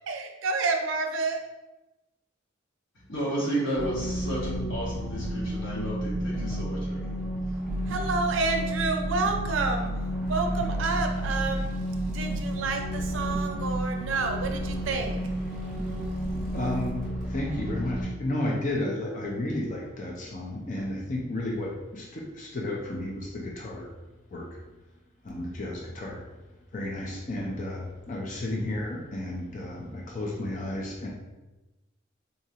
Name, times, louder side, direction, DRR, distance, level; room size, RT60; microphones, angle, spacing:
voice 1, 0.1-1.4 7.9-9.9 10.3-11.7 12.1-15.2, right 3 dB, 80° right, 0.5 m, -29 dB
voice 2, 3.1-7.0, right 1 dB, 70° left, 1.4 m, -32 dB
sound 1, 3.7-18.0, equal, ahead, 1.3 m, -31 dB
voice 3, 16.5-16.9 17.3-23.9 24.3-24.6 25.2-26.3 26.7-31.1, left 1 dB, 40° left, 0.5 m, -32 dB
4.0 x 2.4 x 2.8 m
head